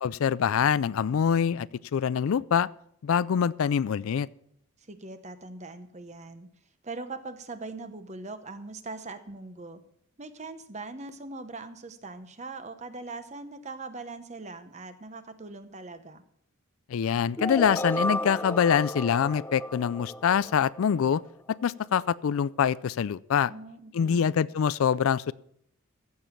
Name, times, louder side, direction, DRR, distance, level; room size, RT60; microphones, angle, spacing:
voice 1, 0.0-2.7 3.0-4.3 16.9-21.2 21.6-23.5 23.9-25.3, left 7 dB, 75° left, 20 dB, 0.4 m, -25 dB
voice 2, 4.8-6.5 6.8-9.8 10.2-16.2 23.5-24.3, right 3 dB, 30° right, 10 dB, 0.9 m, -41 dB
sound 1, 17.4-21.3, left 1 dB, 10° left, 0.4 m, -33 dB
15.0 x 7.0 x 5.7 m, 0.71 s
head